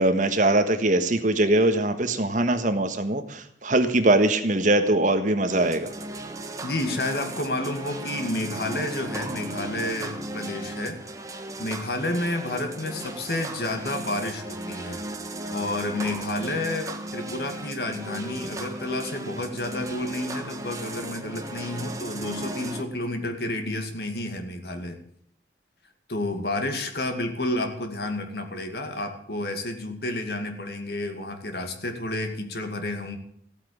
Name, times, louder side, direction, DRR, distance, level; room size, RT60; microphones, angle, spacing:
voice 1, 0.0-5.9, right 2 dB, 45° right, 8 dB, 1.5 m, -22 dB
sound 1, 5.5-22.8, right 2 dB, 20° right, 1.3 m, -36 dB
voice 2, 6.6-11.1 11.3-15.2 15.5-25.0 26.1-33.2, left 1 dB, 65° left, 6 dB, 2.3 m, -30 dB
15.0 x 8.8 x 8.7 m, 0.66 s
head